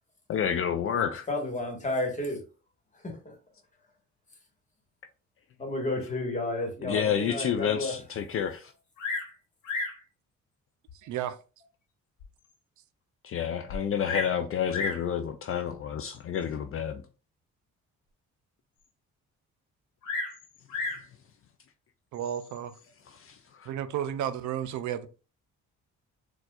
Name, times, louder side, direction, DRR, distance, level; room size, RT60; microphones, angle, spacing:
voice 1, 0.3-1.3 6.8-8.7 13.2-17.0 23.1-23.7, left 8 dB, 45° left, 0.4 m, -30 dB
voice 2, 1.3-2.4 3.0-3.3 5.6-7.9, left 2 dB, 25° left, 1.3 m, -31 dB
Bird vocalization bird call bird song, 9.0-9.4 9.6-10.0 10.9-11.0 11.6-11.7 12.2-12.3 12.5-12.6 13.7-14.4 14.7-15.1 16.1-16.4 20.0-21.1 22.1-22.6, left 3 dB, 90° left, 1.2 m, -33 dB
voice 3, 11.0-11.4 22.1-22.8 23.7-25.1, right 10 dB, 75° right, 0.5 m, -32 dB
4.2 x 2.3 x 2.3 m
cardioid pair, 90°, 30 cm